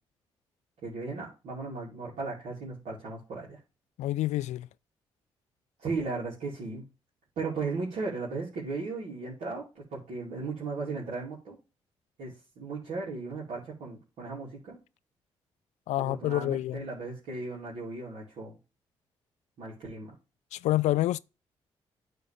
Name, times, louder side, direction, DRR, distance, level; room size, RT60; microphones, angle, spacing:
voice 1, 0.8-3.6 5.8-6.8 7.4-11.6 12.2-14.8 16.0-18.6 19.6-20.1, right 3 dB, 75° right, 2.8 m, -36 dB
voice 2, 4.0-4.7 15.9-16.8 20.5-21.2, left 15 dB, 70° left, 0.4 m, -28 dB
9.4 x 3.8 x 4.9 m
hypercardioid pair, 45°, 12 cm